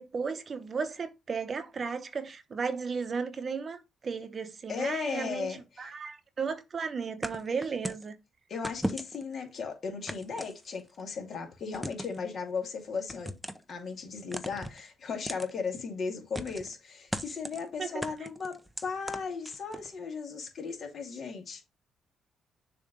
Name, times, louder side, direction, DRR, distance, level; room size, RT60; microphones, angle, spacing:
voice 1, 0.0-8.2 17.8-18.0, right 5 dB, 40° right, 0.9 m, -35 dB
voice 2, 4.7-5.9 8.5-13.3 13.7-18.6 18.8-21.6, left 5 dB, 55° left, 2.4 m, -36 dB
sound 1, 7.2-8.1 8.6-9.3 10.1-11.0 11.7-12.2 13.1-13.7 14.3-14.8 15.3-15.5 16.3-16.7 17.1-17.6 18.0-19.9, equal, 5° right, 0.7 m, -37 dB
6.6 x 3.2 x 5.2 m
cardioid pair, 90°, 0 cm